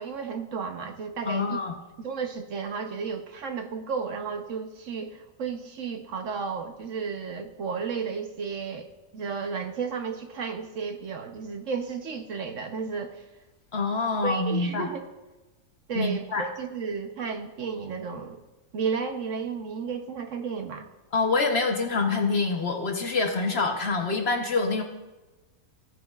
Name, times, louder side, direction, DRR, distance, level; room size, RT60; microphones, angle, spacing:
voice 1, 0.0-1.6 2.0-8.9 9.1-13.2 14.2-15.0 15.9-18.4 18.7-20.9, right 5 dB, 60° right, 6 dB, 1.0 m, -33 dB
voice 2, 1.2-1.7 13.7-14.9 15.9-16.5 21.1-24.8, left 3 dB, 50° left, 4 dB, 0.9 m, -26 dB
15.0 x 9.2 x 2.3 m, 1.1 s
omnidirectional pair, 1.6 m